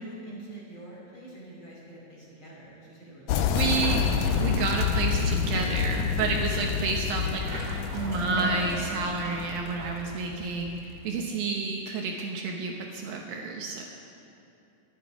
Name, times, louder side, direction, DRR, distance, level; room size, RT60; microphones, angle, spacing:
voice 1, 0.0-3.6, right 1 dB, 35° left, -5 dB, 3.3 m, -45 dB
sound 1, 3.3-11.0, left 7 dB, 80° left, 2.0 m, -28 dB
voice 2, 3.5-4.1 4.4-13.8, right 4 dB, 70° right, 1 dB, 2.5 m, -30 dB
sound 2, 3.8-5.3 7.2-10.0, right 1 dB, 30° right, 2.5 m, -37 dB
24.5 x 9.3 x 4.8 m, 2.7 s
omnidirectional pair, 4.7 m